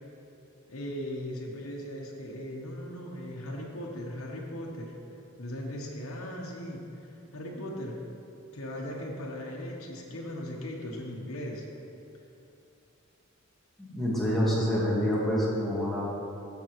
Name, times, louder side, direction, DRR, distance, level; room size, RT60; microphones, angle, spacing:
voice 1, 0.7-4.9 5.4-8.0 8.5-11.6, left 1 dB, 80° left, -2 dB, 1.1 m, -38 dB
voice 2, 13.8-16.1, equal, ahead, -7 dB, 1.6 m, -27 dB
14.0 x 6.0 x 3.1 m, 2.7 s
head